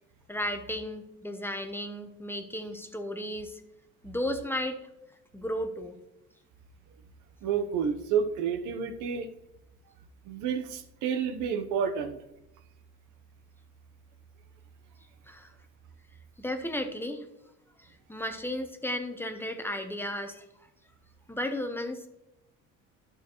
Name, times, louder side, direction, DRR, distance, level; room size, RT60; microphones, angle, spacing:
voice 1, 0.3-3.6 4.0-4.8 5.3-6.0 15.3-15.5 16.4-17.3 17.8-20.4 21.3-22.1, left 1 dB, 5° left, 6 dB, 0.8 m, -34 dB
voice 2, 7.4-9.3 10.2-12.2, right 7 dB, 75° right, 8 dB, 1.0 m, -30 dB
11.0 x 6.6 x 3.0 m, 0.87 s
cardioid pair, 115°, 30 cm